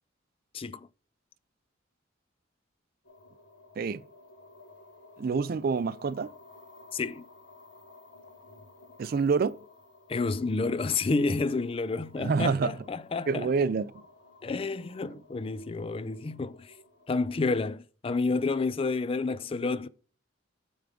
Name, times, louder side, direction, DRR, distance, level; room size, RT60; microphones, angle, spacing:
voice 1, 0.5-0.9 6.9-7.2 10.1-13.7 14.4-16.7 17.1-19.9, left 3 dB, 30° left, 0.3 m, -30 dB
sound 1, 3.0-17.6, left 2 dB, 70° left, 1.4 m, -55 dB
voice 2, 5.2-6.3 9.0-9.6 12.2-12.7 13.3-13.9, right 5 dB, 50° right, 0.4 m, -27 dB
9.3 x 3.6 x 5.0 m
head